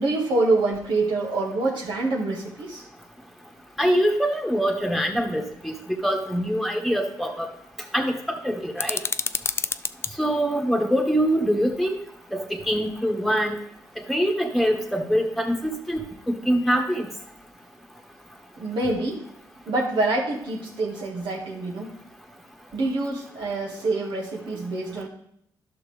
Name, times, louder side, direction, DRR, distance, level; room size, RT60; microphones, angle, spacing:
voice 1, 0.0-2.8 18.6-19.2 19.7-21.9 22.7-25.1, right 2 dB, 70° right, -3 dB, 1.8 m, -26 dB
voice 2, 3.8-5.7 6.0-7.5 7.9-9.0 10.2-12.0 12.3-13.6 14.1-17.1, equal, ahead, 3 dB, 1.6 m, -24 dB
sound 1, 8.8-10.1, left 5 dB, 30° left, 0.4 m, -28 dB
11.5 x 5.9 x 3.4 m, 0.71 s
cardioid pair, 80°, 9 cm